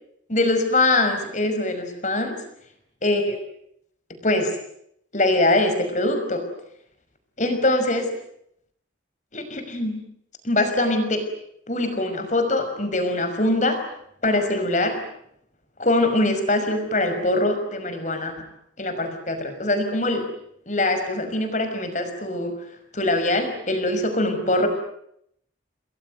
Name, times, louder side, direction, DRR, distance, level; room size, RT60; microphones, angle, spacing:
voice 1, 0.3-2.4 3.0-3.4 4.2-4.5 5.1-6.4 7.4-8.1 9.3-10.0 10.4-11.2 11.7-13.8 14.2-15.0 15.8-18.3 18.8-20.3 20.7-22.6 22.9-24.7, left 2 dB, 40° left, 7 dB, 5.7 m, -23 dB
29.5 x 21.0 x 9.4 m, 0.72 s
head